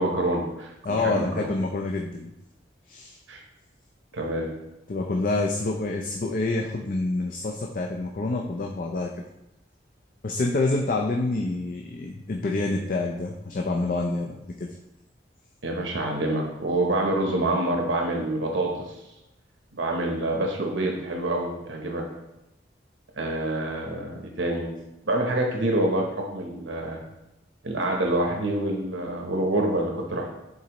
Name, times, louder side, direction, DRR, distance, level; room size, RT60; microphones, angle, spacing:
voice 1, 0.0-1.5 3.3-3.4 4.1-4.5 15.6-18.9 19.7-22.1 23.2-24.7 25.0-27.0 27.6-30.3, right 1 dB, 80° right, 1 dB, 0.8 m, -27 dB
voice 2, 0.8-2.3 2.9-3.2 4.9-9.1 10.2-14.7, left 2 dB, 45° left, 1 dB, 0.4 m, -27 dB
8.2 x 3.9 x 3.0 m, 0.92 s
head